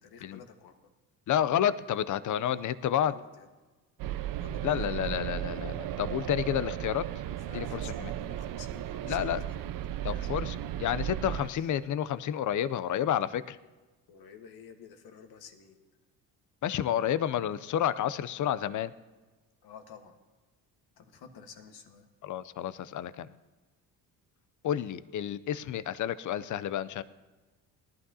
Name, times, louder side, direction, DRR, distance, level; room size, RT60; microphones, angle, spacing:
voice 1, 0.0-0.8 2.4-2.6 3.1-3.5 4.4-4.9 7.2-9.6 10.1-10.6 11.2-11.7 14.1-15.8 19.6-20.1 21.0-22.1, left 6 dB, 70° left, 6 dB, 1.5 m, -51 dB
voice 2, 1.3-3.1 4.6-7.1 7.5-8.1 9.1-9.4 10.0-13.6 16.6-18.9 22.2-23.3 24.6-27.0, left 10 dB, 50° left, 15 dB, 0.6 m, -30 dB
sound 1, 4.0-11.5, right 12 dB, 55° right, 0.5 m, -35 dB
18.5 x 11.5 x 2.8 m, 1.2 s
cardioid pair, 85°, 40 cm